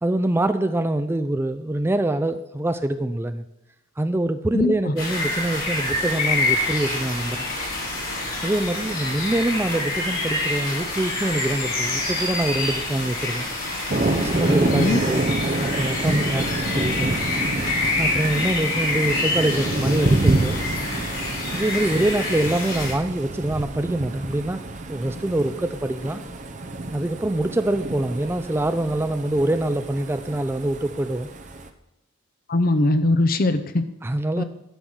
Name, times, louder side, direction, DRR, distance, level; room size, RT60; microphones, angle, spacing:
voice 1, 0.0-3.4 4.0-7.5 8.4-13.5 14.2-15.3 15.6-17.2 18.0-20.6 21.5-24.6 24.9-26.2 26.9-31.3 34.0-34.4, right 1 dB, 10° right, 11 dB, 0.3 m, -24 dB
sound 1, 5.0-22.9, left 2 dB, 70° left, 3.7 m, -27 dB
Thunder, 13.9-31.7, right 2 dB, 35° right, 0.7 m, -27 dB
voice 2, 32.5-33.8 34.4-34.5, left 2 dB, 45° left, 10 dB, 0.6 m, -20 dB
11.5 x 5.7 x 6.3 m, 0.90 s
head